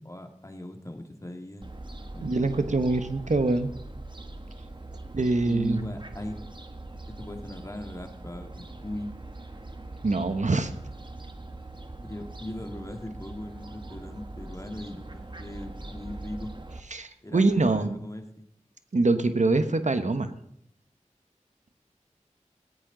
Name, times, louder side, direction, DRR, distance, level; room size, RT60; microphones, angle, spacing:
voice 1, 0.0-1.7 2.1-2.6 5.2-6.4 7.1-9.1 12.0-16.5 17.2-18.5, left 1 dB, 25° left, 5 dB, 2.0 m, -39 dB
Fowl, 1.6-16.8, right 2 dB, 40° right, 1.4 m, -42 dB
voice 2, 2.2-3.7 5.1-5.9 10.0-10.7 16.9-18.0 18.9-20.3, right 3 dB, 70° right, 9 dB, 1.1 m, -24 dB
17.5 x 15.0 x 3.9 m, 0.71 s
wide cardioid pair, 55°, 13 cm